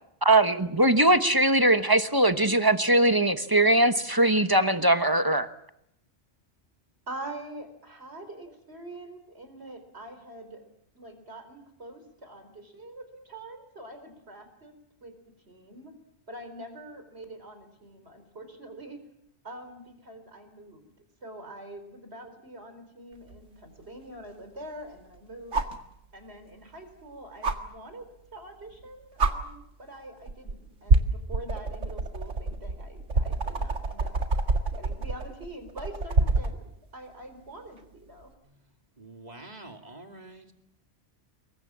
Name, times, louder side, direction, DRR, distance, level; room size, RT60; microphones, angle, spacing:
voice 1, 0.2-5.5, right 1 dB, 20° right, 10 dB, 1.1 m, -21 dB
voice 2, 7.1-10.6 10.9-14.7 15.0-15.1 15.5-15.9 16.3-19.0 19.4-20.9 21.2-25.6 26.1-34.1 34.7-38.3, right 1 dB, 60° right, 8 dB, 4.4 m, -44 dB
sound 1, 23.3-23.4 25.5-25.8 27.4-27.6 28.7-28.8 29.2-29.3 30.3-30.5 30.9-36.6 38.2-38.3, right 3 dB, 85° right, 2.2 m, -26 dB
voice 3, 39.0-40.5, right 2 dB, 35° right, 4 dB, 2.8 m, -46 dB
26.5 x 23.0 x 7.5 m, 0.78 s
omnidirectional pair, 1.2 m